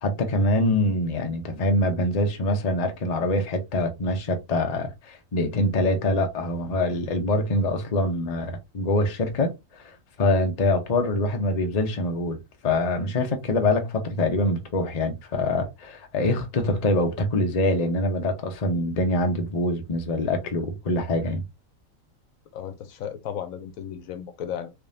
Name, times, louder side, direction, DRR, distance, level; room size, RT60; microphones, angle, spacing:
voice 1, 0.0-9.9 10.2-12.4 12.6-21.4, left 1 dB, 35° left, 0.7 m, -24 dB
voice 2, 22.5-24.7, left 9 dB, 75° left, 1.1 m, -34 dB
3.6 x 3.3 x 2.6 m
omnidirectional pair, 1.4 m